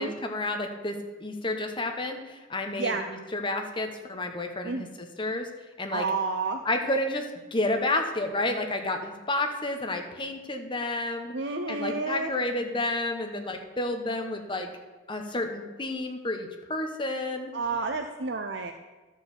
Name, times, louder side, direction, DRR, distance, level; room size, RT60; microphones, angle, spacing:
voice 1, 0.0-5.5 5.8-6.1 6.6-11.3 11.7-14.7 15.1-17.5, left 2 dB, 25° left, 5 dB, 0.9 m, -30 dB
voice 2, 5.9-6.6 11.3-12.3 17.5-18.7, right 4 dB, 55° right, 6 dB, 0.5 m, -30 dB
12.5 x 4.6 x 6.9 m, 1.2 s
head